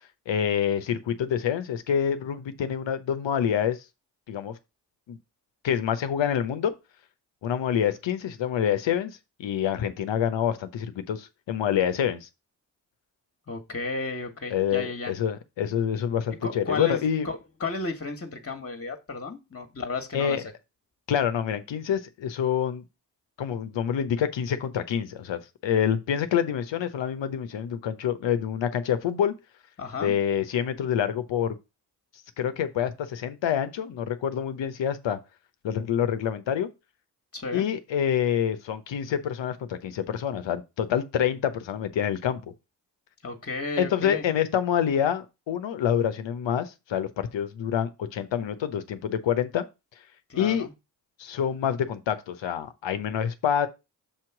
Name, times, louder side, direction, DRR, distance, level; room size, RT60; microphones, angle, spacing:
voice 1, 0.3-3.8 4.3-4.5 5.1-5.2 5.6-6.7 7.4-12.3 14.5-17.3 20.1-20.4 21.1-22.8 23.4-29.3 30.0-31.6 32.4-35.2 35.6-36.7 37.5-42.4 43.8-49.6 50.4-50.7 51.2-53.7, left 9 dB, 75° left, 0.9 m, -27 dB
voice 2, 13.5-15.1 16.4-20.4 29.8-30.2 37.3-37.7 43.2-44.2 50.3-50.7, left 3 dB, 30° left, 1.5 m, -33 dB
7.2 x 3.1 x 5.9 m
supercardioid pair, 45°, 44 cm